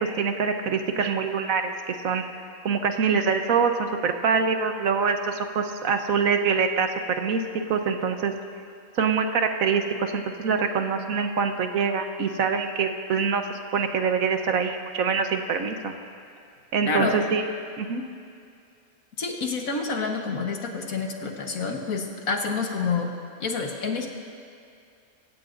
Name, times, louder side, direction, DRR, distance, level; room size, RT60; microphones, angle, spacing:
voice 1, 0.2-2.2 2.6-6.9 7.2-7.4 7.7-8.3 9.0-15.9 16.7-17.4 17.8-18.0, right 5 dB, 75° right, 6 dB, 1.4 m, -25 dB
voice 2, 16.9-17.2 19.2-23.1 23.4-24.1, left 4 dB, 75° left, 2 dB, 1.8 m, -28 dB
26.0 x 15.5 x 2.6 m, 2.4 s
omnidirectional pair, 1.5 m